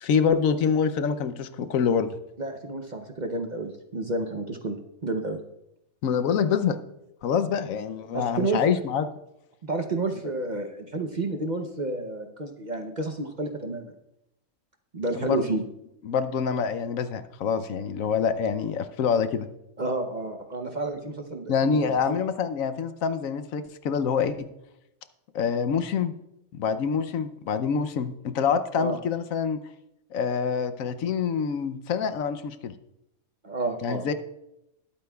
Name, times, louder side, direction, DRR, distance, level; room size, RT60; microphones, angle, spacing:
voice 1, 0.0-2.1 6.0-6.8 7.2-9.1 15.2-15.4 16.0-19.5 21.5-24.5 25.3-26.1 26.5-29.6 30.1-32.7 33.8-34.1, left 6 dB, 75° left, 11 dB, 1.1 m, -26 dB
voice 2, 2.4-5.4 8.1-8.6 9.6-13.9 14.9-15.6 19.8-22.2 28.8-29.0 33.4-34.1, right 2 dB, 40° right, 5 dB, 0.8 m, -30 dB
20.0 x 8.6 x 2.3 m, 0.85 s
omnidirectional pair, 1.5 m